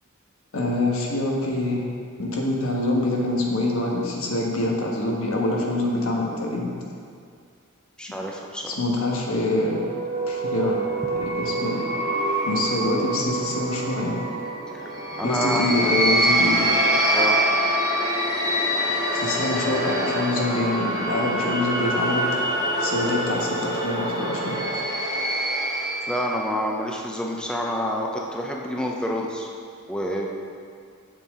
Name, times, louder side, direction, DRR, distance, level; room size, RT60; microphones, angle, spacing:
voice 1, 0.5-1.8 2.2-6.7 8.6-9.8 10.3-10.9 11.2-11.8 12.5-14.1 15.2-16.7 19.1-22.2 22.8-24.6, left 1 dB, 80° left, -1 dB, 1.2 m, -25 dB
voice 2, 8.0-8.7 14.7-14.9 15.2-15.7 17.1-17.4 26.1-29.5 29.9-30.3, equal, 5° left, -1 dB, 0.5 m, -28 dB
sound 1, 9.5-26.3, right 1 dB, 20° right, 1.3 m, -25 dB
7.4 x 6.9 x 3.6 m, 2.2 s
head